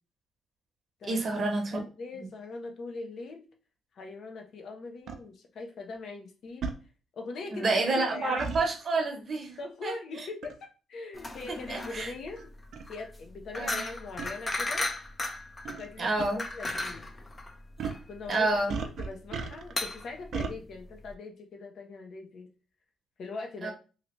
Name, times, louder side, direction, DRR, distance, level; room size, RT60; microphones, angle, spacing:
voice 1, 1.1-1.8 2.2-2.3 7.5-9.9 11.7-12.1 13.5-13.8 16.0-16.4 18.3-18.8 23.6-23.7, right 2 dB, 45° right, 0.9 m, -29 dB
voice 2, 1.7-3.5 3.9-6.7 7.1-8.4 9.6-12.5 12.9-14.9 15.7-17.1 18.1-18.6 19.0-22.5 23.2-23.7, left 3 dB, 65° left, 0.8 m, -41 dB
sound 1, 5.1-5.2 6.6-6.8 8.4-8.7 10.4-10.6 11.5-11.6 12.4-12.5 12.7-12.9 14.2-14.3 15.7-15.9 16.2-16.3 17.8-18.1 18.7-19.8 20.3-20.5, right 5 dB, 65° right, 0.5 m, -35 dB
sound 2, 11.1-21.1, left 2 dB, 25° left, 0.5 m, -36 dB
2.9 x 2.6 x 3.1 m
cardioid pair, 90°, 0 cm